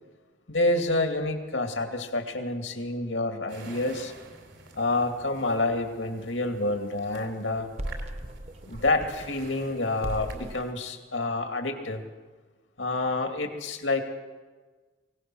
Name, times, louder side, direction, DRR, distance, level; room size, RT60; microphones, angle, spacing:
voice 1, 0.5-4.1 4.8-7.7 8.7-12.0 12.8-14.0, left 2 dB, 90° left, 4 dB, 2.5 m, -28 dB
sound 1, 3.5-10.7, right 3 dB, 85° right, 3.4 m, -49 dB
sound 2, 7.6-9.7 10.0-10.7, right 1 dB, 35° right, 0.8 m, -37 dB
23.5 x 17.5 x 6.3 m, 1.4 s
head